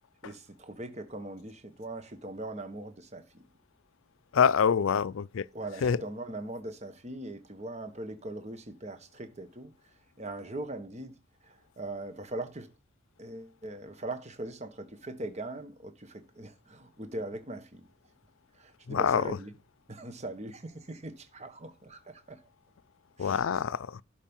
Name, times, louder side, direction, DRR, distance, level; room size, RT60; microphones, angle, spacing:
voice 1, 0.2-3.5 5.5-9.7 10.2-12.7 13.2-17.9 18.5-19.5 19.9-22.4 23.2-23.4, right 2 dB, 35° right, 1.4 m, -41 dB
voice 2, 4.3-5.5 5.8-6.0 18.9-19.4 23.2-24.0, left 7 dB, 75° left, 0.4 m, -26 dB
12.0 x 5.2 x 5.5 m
head